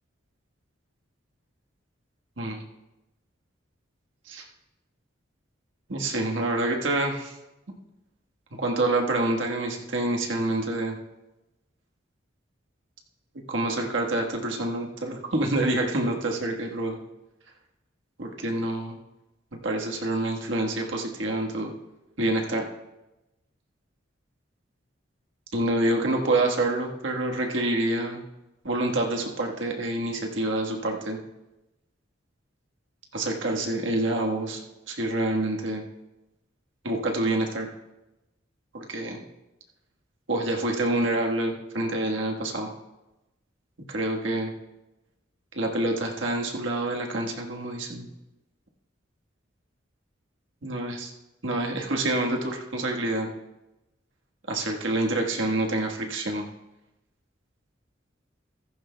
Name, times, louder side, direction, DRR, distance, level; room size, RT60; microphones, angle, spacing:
voice 1, 5.9-7.3 8.6-11.0 13.5-17.0 18.2-19.0 19.6-21.7 22.2-22.6 25.5-28.2 28.6-31.2 33.1-34.6 34.9-35.8 36.8-37.7 38.7-39.2 40.3-42.7 43.9-44.5 45.5-48.1 50.6-51.1 51.4-53.3 54.5-56.4, right 2 dB, 75° right, 1 dB, 1.5 m, -27 dB
15.0 x 14.5 x 2.3 m, 0.98 s
head